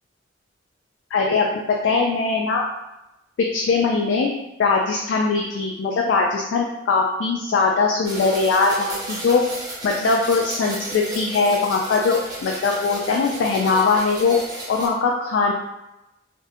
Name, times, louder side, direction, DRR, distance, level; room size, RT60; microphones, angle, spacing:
voice 1, 1.1-2.6 3.5-4.3 4.6-9.4 9.8-14.4 14.7-15.5, left 4 dB, 80° left, -1 dB, 0.3 m, -21 dB
sound 1, 8.0-14.9, right 1 dB, 20° right, 0.5 m, -34 dB
2.6 x 2.0 x 2.6 m, 0.93 s
head